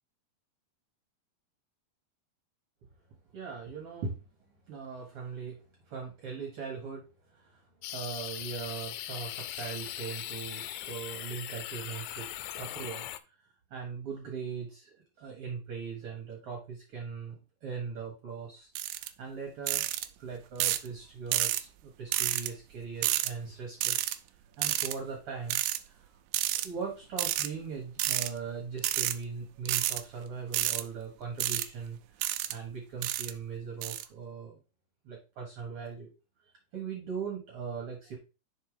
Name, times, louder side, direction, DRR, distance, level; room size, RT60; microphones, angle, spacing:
voice 1, 3.3-4.2 4.7-13.1 13.7-18.7 19.2-19.9 20.2-24.0 24.6-26.1 26.6-34.6 35.0-36.1 36.7-38.2, right 5 dB, 50° right, 1 dB, 1.9 m, -40 dB
sound 1, 7.8-13.2, left 13 dB, 90° left, 2.4 m, -40 dB
sound 2, 18.8-19.1 19.7-20.1 20.6-20.9 21.3-21.6 22.1-22.5 23.0-23.3 23.8-24.2 24.6-24.9 25.5-25.8 26.3-26.7 27.2-27.5 28.0-28.3 28.8-29.1 29.7-30.0 30.5-30.8 31.4-31.7 32.2-32.5 33.0-33.3 33.8-34.0, right 14 dB, 80° right, 2.1 m, -29 dB
5.7 x 4.6 x 4.9 m, 0.30 s
omnidirectional pair, 4.1 m